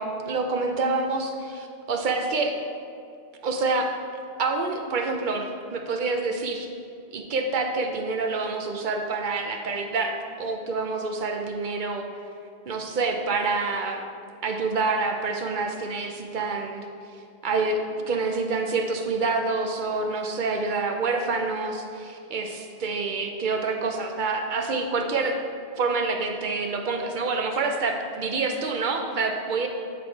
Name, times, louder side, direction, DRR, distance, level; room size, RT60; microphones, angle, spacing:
voice 1, 0.0-2.5 3.4-3.9 4.4-6.7 7.1-12.1 12.7-14.0 14.4-16.9 17.4-17.8 18.1-25.4 25.8-29.7, right 3 dB, 55° right, 4 dB, 0.6 m, -27 dB
8.9 x 3.4 x 4.5 m, 2.4 s
omnidirectional pair, 1.1 m